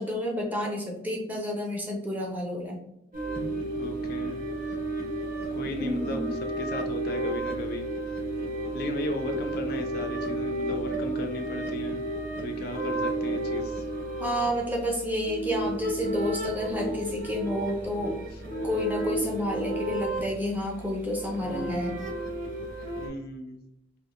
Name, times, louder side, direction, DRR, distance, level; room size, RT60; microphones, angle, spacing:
voice 1, 0.0-2.8 3.4-3.5 5.8-6.3 14.2-18.2 18.6-22.0, left 1 dB, 10° right, 0 dB, 0.5 m, -30 dB
sound 1, 3.1-23.1, right 2 dB, 45° right, 1.2 m, -32 dB
voice 2, 3.8-4.5 5.5-7.9 8.7-12.0 12.4-13.8 21.4-21.8 23.0-23.7, left 1 dB, 50° left, 4 dB, 0.3 m, -36 dB
3.3 x 2.4 x 2.4 m, 0.80 s
head